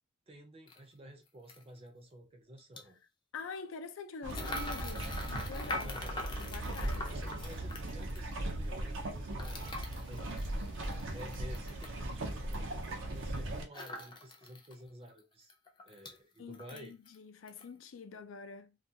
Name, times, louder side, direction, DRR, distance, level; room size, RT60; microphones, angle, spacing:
voice 1, 0.3-3.0 5.8-6.2 6.8-10.4 10.7-12.8 13.1-15.5 15.8-16.9, right 1 dB, 30° right, 0.5 m, -52 dB
sound 1, 0.7-0.8 1.5-1.6 2.6-2.8 4.3-8.3 9.4-12.0 13.7-14.7 15.1-15.2 15.5-16.2 16.5-17.2 17.5-17.7, left 2 dB, 25° left, 0.4 m, -43 dB
voice 2, 3.3-6.0 6.4-7.0 16.4-18.8, left 5 dB, 90° left, 0.4 m, -45 dB
sound 2, 4.2-13.6, right 1 dB, 75° right, 0.6 m, -38 dB
2.3 x 2.2 x 2.7 m
head